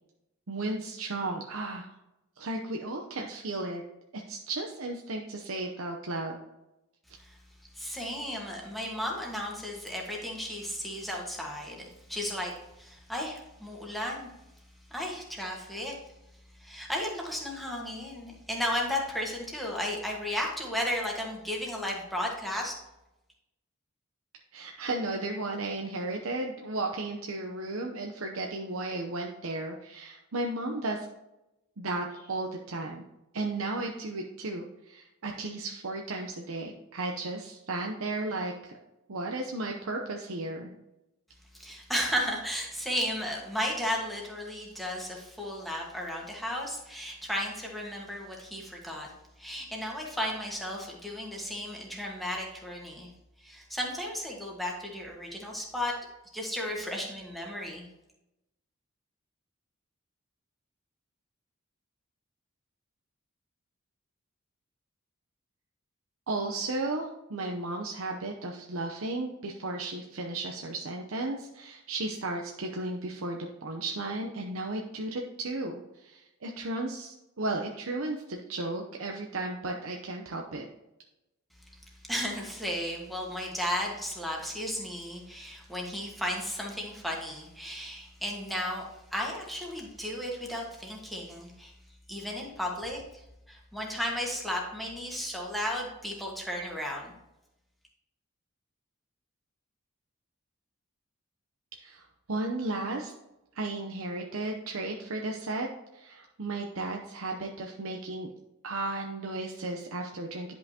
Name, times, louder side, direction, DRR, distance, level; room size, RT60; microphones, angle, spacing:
voice 1, 0.5-1.9 2.4-3.8 4.1-6.4 24.5-31.1 31.8-33.0 33.3-38.8 39.1-40.7 66.3-80.7 101.8-103.1 103.5-108.3 108.6-110.5, right 2 dB, 75° right, 1 dB, 0.7 m, -34 dB
voice 2, 7.7-14.3 14.9-15.9 16.6-22.7 41.5-49.1 49.4-53.1 53.4-55.9 56.3-57.8 82.1-88.8 89.1-91.7 92.1-97.1, equal, ahead, -2 dB, 1.6 m, -34 dB
10.5 x 5.6 x 2.9 m, 0.92 s
head